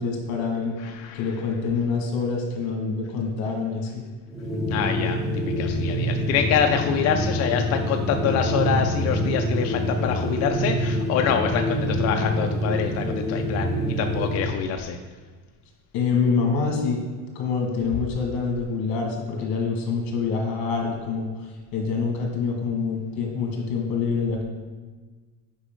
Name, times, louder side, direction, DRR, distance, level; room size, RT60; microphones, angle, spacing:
voice 1, 0.0-0.8 1.1-4.0 15.9-17.0 17.4-24.4, left 5 dB, 70° left, 0 dB, 1.9 m, -26 dB
voice 2, 0.8-1.2 4.7-15.0, left 8 dB, 45° left, 5 dB, 0.4 m, -26 dB
sound 1, 4.3-14.5, equal, ahead, 0.9 m, -26 dB
8.2 x 5.0 x 3.8 m, 1.4 s
cardioid pair, 160°, 38 cm